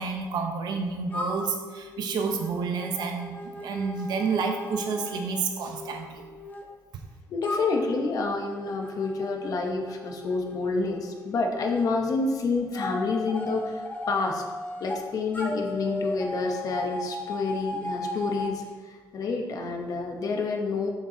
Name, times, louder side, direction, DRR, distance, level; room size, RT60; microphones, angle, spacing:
voice 1, 0.0-6.2, right 5 dB, 70° right, 4 dB, 0.9 m, -29 dB
sound 1, 1.1-6.6 7.4-11.9 12.7-15.0 15.3-18.6, left 2 dB, 20° left, 0.7 m, -37 dB
voice 2, 7.3-14.4 14.8-20.9, left 3 dB, 55° left, 2 dB, 1.0 m, -28 dB
6.9 x 6.9 x 2.8 m, 1.4 s
cardioid pair, 155°, 7 cm